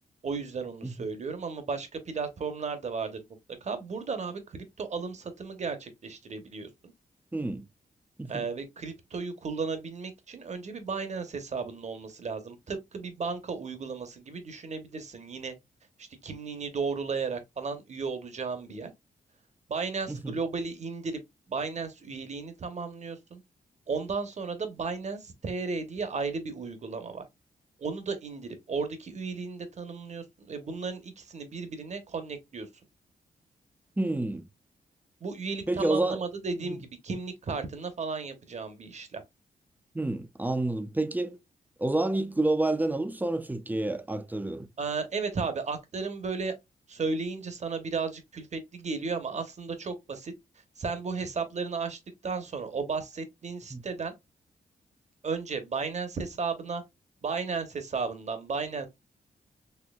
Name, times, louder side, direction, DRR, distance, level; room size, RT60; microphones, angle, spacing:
voice 1, 0.2-3.2 3.6-6.9 8.3-15.5 16.0-18.9 19.7-21.2 21.5-23.4 23.9-27.3 27.8-32.7 35.2-39.2 44.8-46.5 46.9-50.3 50.8-54.1 55.2-56.8 57.2-58.9, right 4 dB, 50° right, 0.9 m, -34 dB
voice 2, 7.3-7.7 8.2-8.5 20.1-20.3 34.0-34.5 35.7-36.2 36.6-36.8 39.9-41.4 41.8-44.7 53.7-53.8, right 2 dB, 10° right, 0.5 m, -29 dB
4.4 x 2.9 x 2.3 m
cardioid pair, 80°, 16 cm